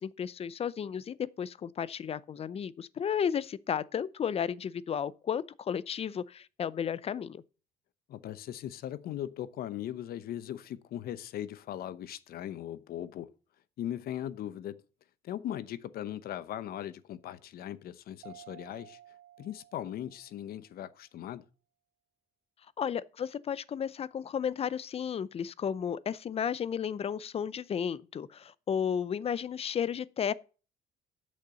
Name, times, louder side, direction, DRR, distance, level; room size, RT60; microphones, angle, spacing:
voice 1, 0.0-7.4 22.8-30.3, left 8 dB, 35° left, 0.6 m, -33 dB
voice 2, 8.1-13.3 13.8-14.8 15.2-19.0 19.4-21.4, left 11 dB, 65° left, 0.8 m, -39 dB
Mallet percussion, 18.2-20.7, right 13 dB, 90° right, 0.9 m, -54 dB
8.5 x 6.6 x 6.9 m
cardioid pair, 110°, 17 cm